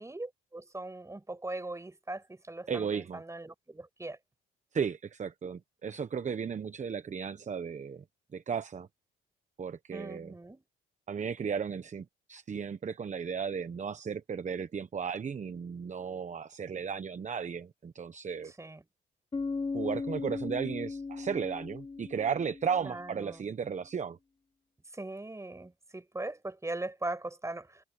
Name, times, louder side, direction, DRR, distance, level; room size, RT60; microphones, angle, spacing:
voice 1, 0.0-4.2 9.9-10.6 18.6-18.8 22.8-23.5 24.9-27.8, right 2 dB, 15° right, 7.5 m, -40 dB
voice 2, 2.7-3.2 4.7-8.0 8.3-8.9 9.6-10.3 11.1-18.5 19.7-24.2, right 6 dB, 35° right, 1.1 m, -35 dB
Bass guitar, 19.3-23.1, left 4 dB, 25° left, 1.2 m, -37 dB
cardioid pair, 90°, 20 cm